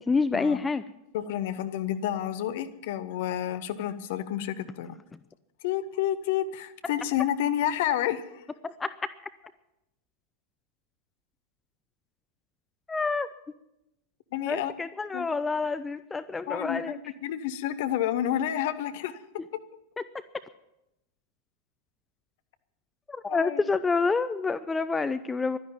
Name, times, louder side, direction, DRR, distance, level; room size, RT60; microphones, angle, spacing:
voice 1, 0.1-0.8 8.6-8.9 12.9-13.3 14.5-17.0 23.1-25.6, left 4 dB, 15° left, 13 dB, 0.5 m, -28 dB
voice 2, 1.1-4.9 5.6-8.4 14.3-14.7 15.1-15.3 16.5-19.2 19.5-19.6 23.3-23.6, left 11 dB, 50° left, 11 dB, 1.0 m, -30 dB
12.0 x 10.5 x 9.1 m, 0.89 s
figure-of-eight pair, 90°, 0 cm